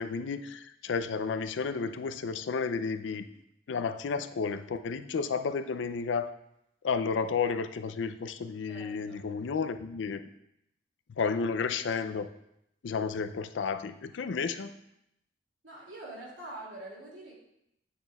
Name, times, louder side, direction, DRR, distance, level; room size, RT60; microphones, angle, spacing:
voice 1, 0.0-3.3 3.7-6.3 6.8-10.2 11.2-12.3 12.8-14.7, left 5 dB, 70° left, 10 dB, 0.4 m, -32 dB
voice 2, 8.7-9.2 11.2-11.3 14.5-14.7 15.6-17.3, right 1 dB, 85° right, -3 dB, 2.4 m, -45 dB
8.6 x 6.4 x 2.3 m, 0.80 s
head